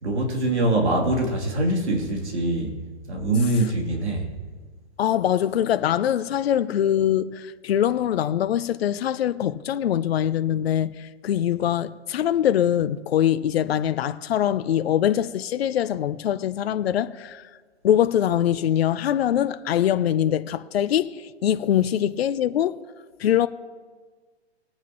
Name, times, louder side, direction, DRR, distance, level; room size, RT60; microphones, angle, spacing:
voice 1, 0.0-2.7 3.1-4.3, right 1 dB, 85° right, 3.1 m, -23 dB
voice 2, 5.0-10.9 11.2-17.4 17.8-22.8 23.2-23.5, left 10 dB, 65° left, 0.7 m, -23 dB
21.5 x 9.1 x 3.0 m
hypercardioid pair, 135°, 33 cm